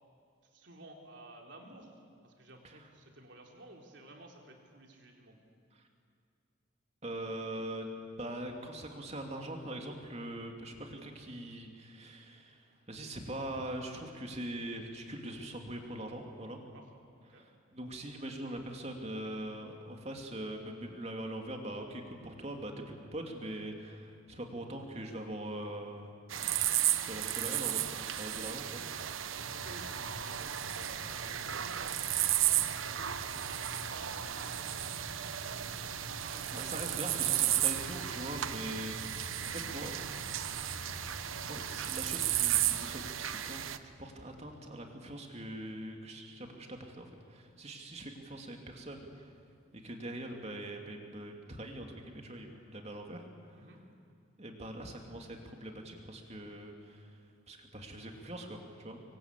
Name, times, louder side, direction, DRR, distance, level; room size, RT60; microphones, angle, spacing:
voice 1, 0.5-5.4 16.7-16.9 17.2-17.4 29.5-31.7 32.1-34.5 36.1-37.5 39.3-39.6 53.6-53.8, right 2 dB, 60° right, 1 dB, 3.9 m, -54 dB
voice 2, 7.0-12.6 12.9-16.6 17.3-26.2 27.0-29.5 36.5-40.0 41.4-49.3 49.7-53.7 54.4-57.2 57.5-59.0, right 1 dB, 30° right, 3 dB, 2.9 m, -42 dB
sound 1, 26.3-43.8, right 12 dB, 80° right, 0.9 m, -34 dB
sound 2, 29.4-43.1, left 1 dB, 80° left, 1.5 m, -50 dB
26.0 x 23.5 x 8.4 m, 2.3 s
head